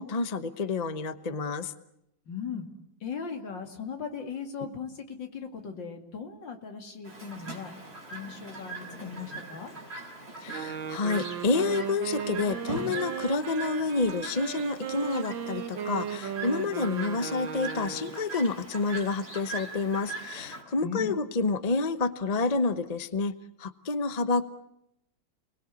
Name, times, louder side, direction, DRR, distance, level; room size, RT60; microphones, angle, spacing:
voice 1, 0.0-1.7 10.4-23.3 23.6-24.4, left 3 dB, 35° left, 12 dB, 0.7 m, -29 dB
voice 2, 2.3-2.7 3.0-7.7 8.1-9.7 20.8-21.2, left 6 dB, 65° left, 5 dB, 3.0 m, -38 dB
Chirp tweet, 7.0-20.6, right 3 dB, 30° right, 5.2 m, -41 dB
Wind instrument woodwind instrument, 10.4-18.3, right 8 dB, 70° right, 1.9 m, -36 dB
29.5 x 20.5 x 8.2 m, 0.79 s
omnidirectional pair, 2.2 m